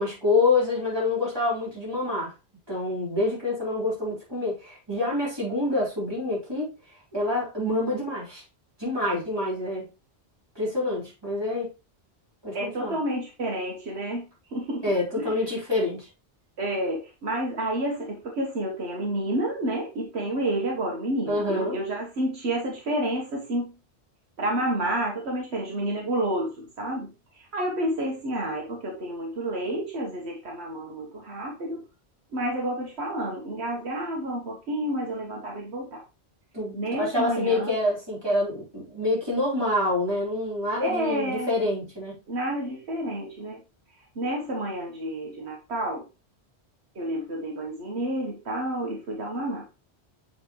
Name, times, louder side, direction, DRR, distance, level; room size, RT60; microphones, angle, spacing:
voice 1, 0.0-2.3 2.7-6.7 7.1-8.4 8.8-9.9 10.5-11.7 12.4-13.0 14.8-16.1 21.3-21.7 36.5-42.2, left 2 dB, 20° right, 4.0 m, -27 dB
voice 2, 12.5-14.3 14.5-14.8 15.2-15.4 16.6-23.7 24.4-31.8 32.3-36.0 36.7-37.7 40.8-41.5 42.3-43.6 44.1-46.0 46.9-49.6, right 1 dB, 80° right, 1.6 m, -30 dB
7.4 x 4.2 x 3.1 m
omnidirectional pair, 1.1 m